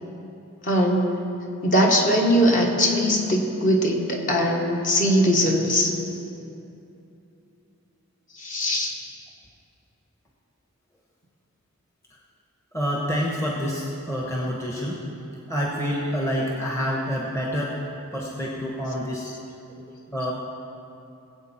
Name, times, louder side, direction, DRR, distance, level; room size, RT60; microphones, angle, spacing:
voice 1, 0.6-1.1 1.6-5.9 8.4-8.9, equal, 40° left, 0 dB, 1.5 m, -21 dB
voice 2, 12.7-15.0 15.5-17.8 18.1-19.3 20.1-20.3, equal, 15° left, -2 dB, 1.1 m, -27 dB
20.0 x 8.1 x 4.4 m, 2.8 s
head